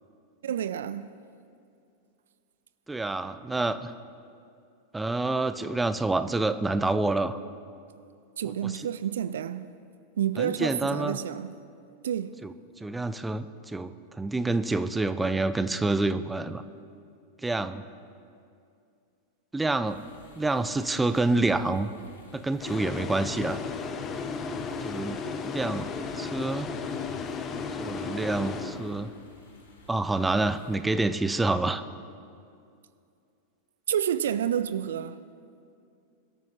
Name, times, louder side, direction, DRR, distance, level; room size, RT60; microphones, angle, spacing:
voice 1, 0.4-1.1 8.4-9.7 10.2-11.5 12.0-12.3 33.9-35.2, right 9 dB, 60° right, 0.4 m, -29 dB
voice 2, 2.9-3.9 4.9-7.4 8.6-8.9 10.4-11.2 12.4-12.5 12.8-16.6 17.4-17.8 19.5-20.0 20.3-21.9 22.3-23.6 24.8-25.2 25.4-26.7 27.8-29.1 29.9-31.8, right 2 dB, 10° right, 0.5 m, -27 dB
sound 1, 19.9-30.8, left 1 dB, 65° left, 3.1 m, -55 dB
sound 2, 22.6-29.3, left 5 dB, 25° left, 0.9 m, -34 dB
23.0 x 13.0 x 3.0 m
figure-of-eight pair, 90°, 0 cm